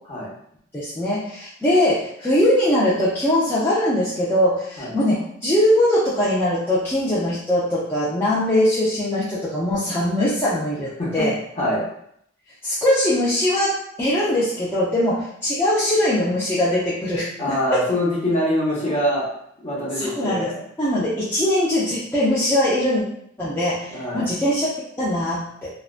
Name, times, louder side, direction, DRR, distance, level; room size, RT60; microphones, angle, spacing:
voice 1, 0.7-11.3 12.6-17.3 17.7-17.8 20.0-20.5 20.8-23.0 23.4-24.7 25.0-25.7, left 1 dB, 10° left, -10 dB, 0.4 m, -21 dB
voice 2, 17.4-19.3 19.6-20.6 23.9-24.3, left 1 dB, 35° left, -7 dB, 0.9 m, -24 dB
2.5 x 2.1 x 2.3 m, 0.70 s
head